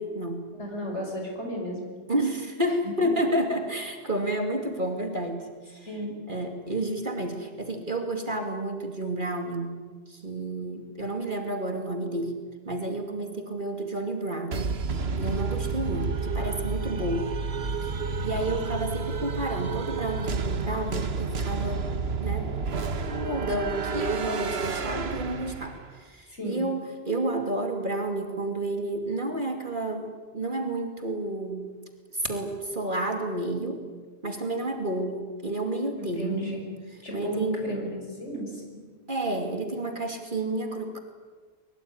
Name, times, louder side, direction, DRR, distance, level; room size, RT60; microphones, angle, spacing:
voice 1, 0.0-0.5 2.1-5.9 6.3-9.7 10.1-17.3 17.8-17.9 18.2-21.9 22.2-22.6 23.1-31.7 32.1-33.8 34.2-36.7 37.1-37.7 39.1-41.0, right 1 dB, 45° right, 5 dB, 2.8 m, -30 dB
voice 2, 0.6-1.9 5.9-6.2 26.3-26.6 36.0-36.6 37.0-38.8, equal, 90° left, 1 dB, 6.2 m, -34 dB
sound 1, 14.5-25.9, right 4 dB, 65° right, 1.6 m, -30 dB
23.0 x 22.5 x 9.7 m, 1.4 s
omnidirectional pair, 1.2 m